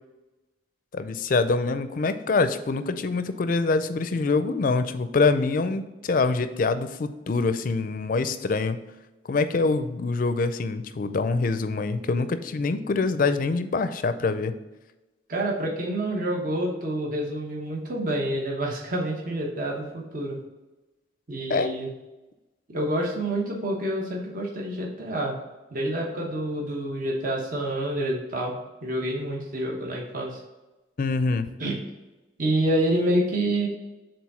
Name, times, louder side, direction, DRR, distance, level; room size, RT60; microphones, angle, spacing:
voice 1, 0.9-8.8 9.3-14.5 21.5-21.8 31.0-31.5, left 3 dB, 50° left, 11 dB, 0.4 m, -25 dB
voice 2, 15.3-20.4 21.3-21.9 22.7-25.3 25.7-28.5 28.8-30.4 31.6-31.8 32.4-33.7, right 1 dB, 50° right, -1 dB, 1.0 m, -27 dB
4.8 x 3.8 x 5.5 m, 1.1 s
head